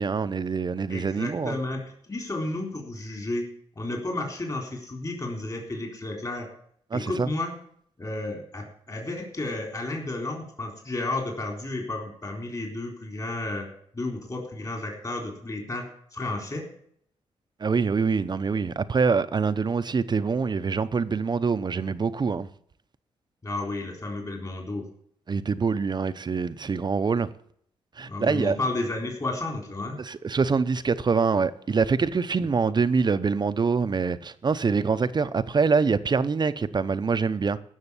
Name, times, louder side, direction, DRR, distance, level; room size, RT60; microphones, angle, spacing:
voice 1, 0.0-1.6 6.9-7.3 17.6-22.5 25.3-27.3 28.0-28.6 30.0-37.6, right 5 dB, 40° right, 0.7 m, -25 dB
voice 2, 0.9-3.5 3.8-6.5 6.9-7.5 8.0-13.7 13.9-15.8 16.1-16.6 23.4-24.9 28.1-30.0, left 2 dB, 30° left, 3.9 m, -32 dB
15.0 x 6.5 x 8.3 m
cardioid pair, 85°, 11 cm